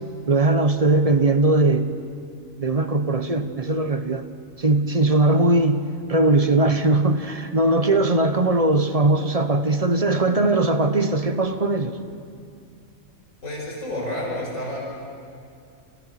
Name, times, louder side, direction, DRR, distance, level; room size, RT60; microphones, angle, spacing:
voice 1, 0.3-1.9 2.6-4.2 4.6-12.0, right 2 dB, 30° right, 9 dB, 1.2 m, -20 dB
voice 2, 13.4-14.8, left 1 dB, 80° left, -3 dB, 6.1 m, -29 dB
30.0 x 29.0 x 6.1 m, 2.4 s
omnidirectional pair, 1.4 m